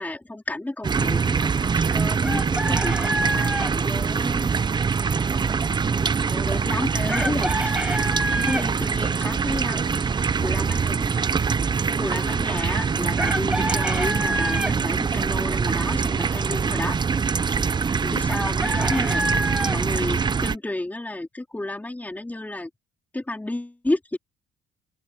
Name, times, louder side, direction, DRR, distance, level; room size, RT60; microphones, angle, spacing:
voice 1, 0.0-4.5 6.2-8.1 8.4-10.0 10.4-11.2 12.0-17.0 17.5-17.7 18.0-19.3 19.7-22.7 23.1-24.2, left 2 dB, 10° left, 4.1 m, -31 dB
sound 1, 0.8-20.5, right 5 dB, 25° right, 0.8 m, -24 dB
Chicken rooster, 2.2-3.7 7.1-8.6 13.2-14.7 18.3-19.8, right 1 dB, 5° right, 7.5 m, -27 dB
open air
cardioid pair, 110°, 17 cm